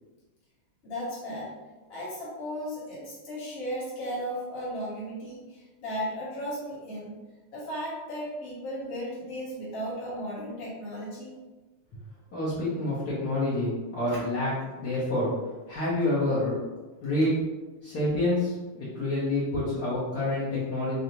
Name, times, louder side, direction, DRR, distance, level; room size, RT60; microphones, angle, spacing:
voice 1, 0.8-1.5 1.9-7.1 7.5-11.3 14.1-14.2, equal, 55° left, -7 dB, 0.9 m, -35 dB
voice 2, 12.3-14.5 14.8-15.3 15.7-16.6 17.0-17.4 17.8-21.0, left 1 dB, 85° left, -10 dB, 0.8 m, -27 dB
4.9 x 2.6 x 2.9 m, 1.2 s
omnidirectional pair, 3.6 m